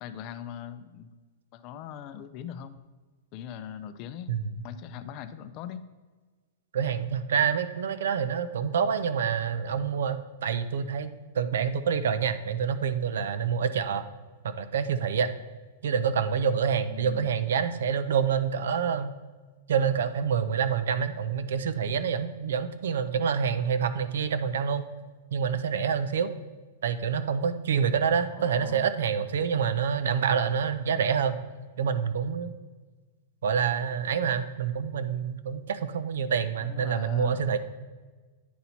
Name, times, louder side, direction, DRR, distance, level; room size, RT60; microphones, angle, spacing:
voice 1, 0.0-1.2 1.5-2.8 3.3-4.4 4.6-5.9 16.9-17.3 28.3-28.9 36.6-37.4, left 9 dB, 30° left, 12 dB, 0.4 m, -41 dB
voice 2, 6.7-14.0 14.4-15.3 15.8-19.1 19.7-24.9 25.3-26.3 26.8-31.4 31.8-32.5 33.4-37.6, right 7 dB, 80° right, 12 dB, 0.5 m, -27 dB
9.3 x 4.1 x 4.3 m, 1.4 s
supercardioid pair, 165°, 0 cm